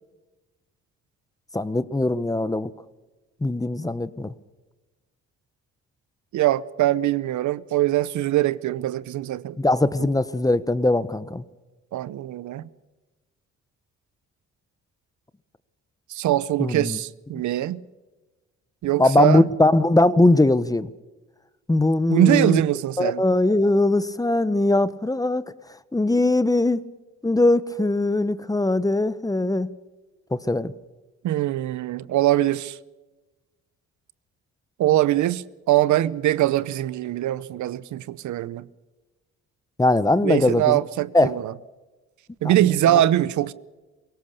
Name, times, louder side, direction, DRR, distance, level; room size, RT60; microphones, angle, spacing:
voice 1, 1.5-2.7 3.4-4.3 9.6-11.4 16.6-17.0 19.0-20.9 21.7-22.6 23.0-25.4 25.9-26.9 27.2-29.7 30.3-30.7 39.8-40.8 41.1-41.3 42.4-42.6, left 2 dB, 10° left, 1.0 m, -20 dB
voice 2, 6.3-9.6 11.9-12.6 16.1-17.8 18.8-19.5 22.1-23.2 31.2-32.8 34.8-38.7 40.2-41.5 42.4-43.5, right 14 dB, 75° right, 0.8 m, -22 dB
23.0 x 18.0 x 6.8 m
cardioid pair, 90°, 30 cm